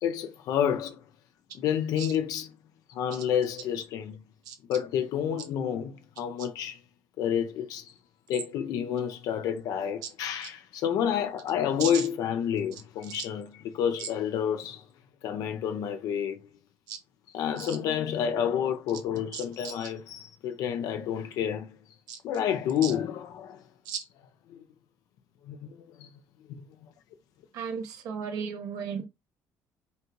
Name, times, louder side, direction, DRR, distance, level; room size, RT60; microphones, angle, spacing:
voice 1, 0.0-1.0 1.5-2.5 2.9-4.2 4.7-6.8 7.2-7.9 8.3-14.8 15.2-16.5 17.3-21.8 22.2-23.6 24.5-24.6 25.5-26.1 26.5-26.6, left 9 dB, 75° left, 0.5 m, -29 dB
voice 2, 27.5-29.0, right 7 dB, 75° right, 1.0 m, -35 dB
5.3 x 2.4 x 3.0 m
cardioid pair, 110°, 6 cm